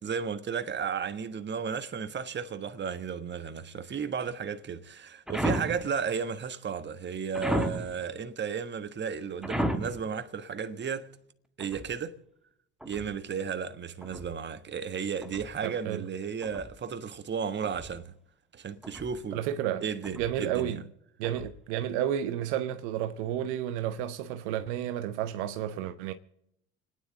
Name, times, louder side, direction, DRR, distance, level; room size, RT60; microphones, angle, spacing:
voice 1, 0.0-11.1 11.6-12.2 12.8-18.1 18.5-19.4 19.8-20.8, right 6 dB, 30° right, 1.4 m, -34 dB
sound 1, 5.3-5.9 7.3-8.0 9.4-10.1 11.6-12.0 12.8-13.2 14.0-14.4 15.2-15.6 16.4-16.8 17.6-18.0 18.8-19.2 20.0-20.4 21.2-21.6, equal, ahead, 1.3 m, -34 dB
voice 2, 15.6-16.0 19.3-19.8 20.2-20.8 21.2-26.1, right 10 dB, 70° right, 1.0 m, -31 dB
30.0 x 10.0 x 3.8 m
hypercardioid pair, 70°, 35 cm